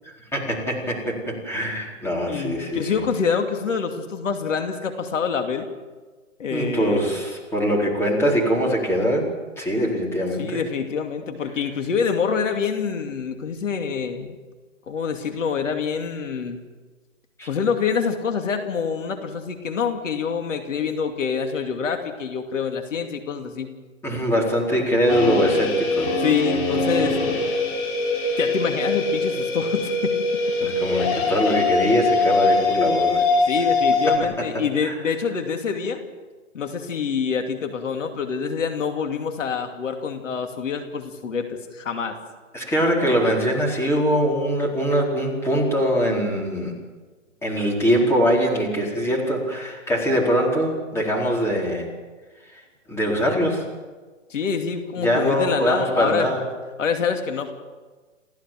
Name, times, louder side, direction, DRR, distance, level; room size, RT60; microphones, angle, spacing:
voice 1, 0.0-3.0 6.5-9.3 9.6-10.6 17.4-17.5 24.0-26.2 30.6-33.2 34.5-34.9 42.5-46.7 47.4-51.9 52.9-53.6 55.0-56.4, equal, 5° left, -2 dB, 4.4 m, -22 dB
voice 2, 2.3-5.7 6.4-7.1 10.4-14.4 14.9-16.6 17.5-23.7 26.2-27.2 28.4-30.1 33.5-36.0 36.5-42.2 54.3-56.3 56.8-57.5, left 6 dB, 70° left, 5 dB, 2.7 m, -26 dB
sound 1, 25.1-34.2, left 3 dB, 40° left, 5.0 m, -22 dB
28.5 x 15.5 x 7.7 m, 1.4 s
hypercardioid pair, 145°, 39 cm